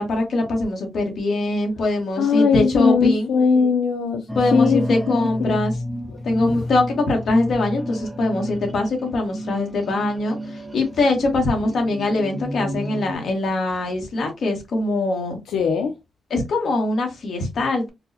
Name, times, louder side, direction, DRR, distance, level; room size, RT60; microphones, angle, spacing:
voice 1, 0.0-3.3 4.3-5.8 6.2-15.4 16.3-17.9, left 2 dB, 50° left, 1.1 m, -22 dB
voice 2, 2.2-4.2 4.5-5.6 6.1-6.2 6.4-6.5 15.5-16.0, left 5 dB, 80° left, 0.4 m, -20 dB
sound 1, 4.3-13.2, equal, 5° right, 0.4 m, -31 dB
4.4 x 2.1 x 2.7 m
wide cardioid pair, 180°, 0 cm